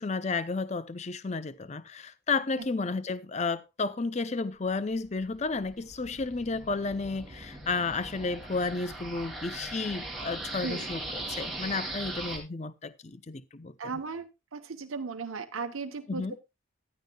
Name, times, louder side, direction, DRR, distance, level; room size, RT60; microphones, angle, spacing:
voice 1, 0.0-13.7 16.1-16.4, left 3 dB, 35° left, 0.5 m, -32 dB
sound 1, 5.0-12.4, right 2 dB, ahead, 2.5 m, -39 dB
voice 2, 13.8-16.4, right 4 dB, 85° right, 0.9 m, -36 dB
15.0 x 11.0 x 2.3 m
head